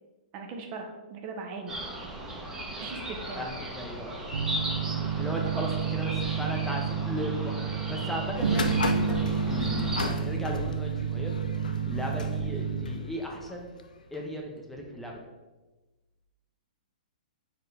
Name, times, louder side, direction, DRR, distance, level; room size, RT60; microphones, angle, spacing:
voice 1, 0.3-1.8 2.8-3.5 5.4-5.5, right 4 dB, 35° right, 3 dB, 0.7 m, -39 dB
sound 1, 1.7-10.1, right 1 dB, 15° right, 0.9 m, -37 dB
voice 2, 3.3-4.2 4.8-9.2 9.5-11.3 11.9-13.8 14.1-15.2, left 1 dB, 5° left, 0 dB, 0.6 m, -36 dB
sound 2, 4.3-12.9, right 7 dB, 85° right, 0.4 m, -30 dB
sound 3, 8.4-14.2, left 3 dB, 90° left, 0.4 m, -36 dB
4.3 x 3.7 x 3.3 m, 1.2 s
hypercardioid pair, 130°, 4 cm